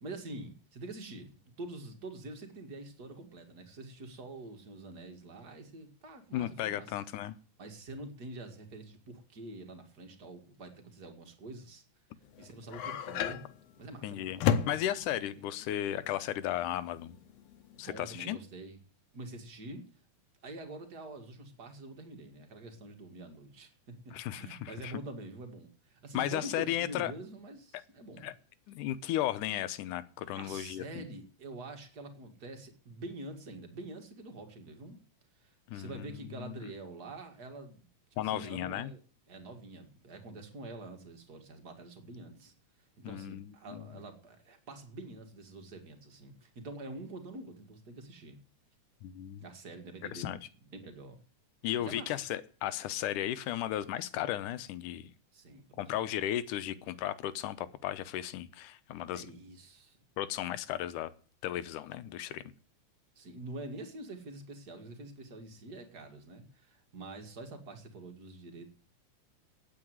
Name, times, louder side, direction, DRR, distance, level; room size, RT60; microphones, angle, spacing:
voice 1, 0.0-7.0 7.6-11.8 12.4-13.5 13.8-14.7 17.8-18.8 19.1-19.9 20.4-28.3 30.3-35.0 35.3-39.0 39.3-42.5 43.0-48.4 49.4-50.3 50.6-51.2 51.8-52.2 55.3-56.1 59.1-60.0 63.2-68.7, right 2 dB, 35° right, 5 dB, 2.2 m, -46 dB
voice 2, 6.3-7.4 14.0-14.4 14.7-17.2 17.8-18.4 24.1-24.9 26.1-27.1 28.2-28.3 28.7-31.1 35.7-36.5 38.2-38.9 43.0-44.0 49.0-49.4 50.1-50.4 51.6-55.1 55.8-59.2 60.2-61.1 61.4-62.4, left 12 dB, 90° left, 14 dB, 2.4 m, -35 dB
sound 1, 12.2-17.8, left 8 dB, 65° left, 1.8 m, -34 dB
9.8 x 8.7 x 9.4 m, 0.40 s
omnidirectional pair, 3.6 m